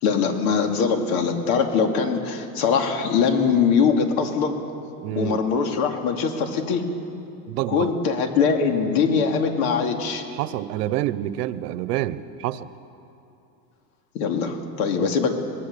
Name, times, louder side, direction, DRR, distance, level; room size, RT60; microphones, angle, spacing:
voice 1, 0.0-4.6 5.2-6.8 7.7-10.2 14.1-15.3, left 6 dB, 60° left, 4 dB, 2.8 m, -22 dB
voice 2, 5.0-5.4 7.5-7.9 10.3-12.7 15.0-15.1, right 13 dB, 75° right, 15 dB, 1.0 m, -27 dB
24.0 x 19.5 x 6.9 m, 2.8 s
supercardioid pair, 160°, 47 cm